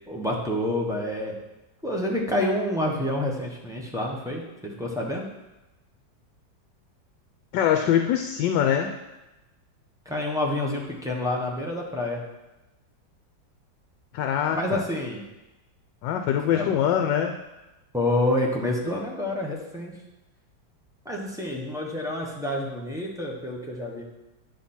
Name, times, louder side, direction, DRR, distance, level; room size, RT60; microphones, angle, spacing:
voice 1, 0.1-1.3 1.8-5.3 10.0-12.2 14.5-15.2 16.5-16.7 17.9-20.0 21.0-24.0, left 1 dB, ahead, -3 dB, 0.8 m, -28 dB
voice 2, 7.5-8.9 14.1-14.8 16.0-17.4, left 9 dB, 75° left, 5 dB, 1.3 m, -23 dB
9.3 x 5.9 x 4.4 m, 1.0 s
omnidirectional pair, 2.0 m